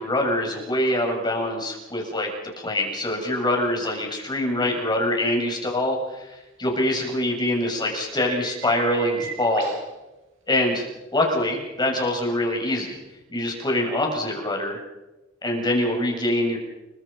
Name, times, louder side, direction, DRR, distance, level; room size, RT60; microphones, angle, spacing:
voice 1, 0.0-2.3 2.6-9.8 10.5-10.9 11.1-13.0 13.3-14.8 15.4-16.6, left 1 dB, 20° left, 1 dB, 7.2 m, -24 dB
sound 1, 3.5-3.6 7.5-7.6 8.0-9.9 11.1-11.3 12.9-13.0, right 5 dB, 80° right, 7.5 m, -38 dB
29.5 x 24.0 x 5.8 m, 1.0 s
head